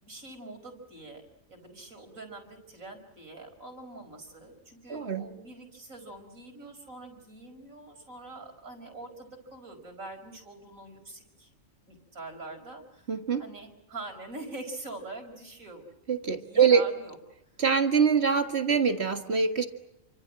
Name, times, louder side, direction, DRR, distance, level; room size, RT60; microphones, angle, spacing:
voice 1, 0.0-1.2 1.5-11.5 11.9-13.1 13.4-15.9 16.4-17.2, right 2 dB, 80° right, 4 dB, 5.6 m, -44 dB
voice 2, 4.9-5.2 13.1-13.4 16.1-16.8 17.6-19.7, right 6 dB, 50° right, 7 dB, 2.0 m, -24 dB
29.0 x 25.5 x 7.6 m, 0.80 s
omnidirectional pair, 1.4 m